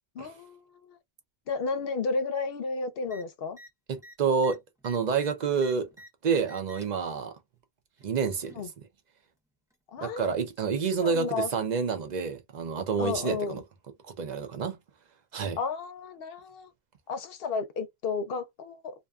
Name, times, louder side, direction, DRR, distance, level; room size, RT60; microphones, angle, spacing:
voice 1, 0.2-1.0 1.5-3.6 8.6-8.7 9.9-10.3 11.0-11.5 13.0-13.6 15.6-16.7 17.1-18.9, left 4 dB, 70° left, 0.8 m, -32 dB
sound 1, 3.0-3.2 3.5-3.7 4.0-6.1 6.4-7.0 8.0-8.7 9.7-9.8, equal, 5° right, 0.5 m, -50 dB
voice 2, 3.9-5.9 6.2-7.4 8.0-8.6 10.0-13.6 14.1-14.8 15.3-15.6, right 5 dB, 50° right, 0.6 m, -28 dB
2.6 x 2.2 x 2.3 m
omnidirectional pair, 1.1 m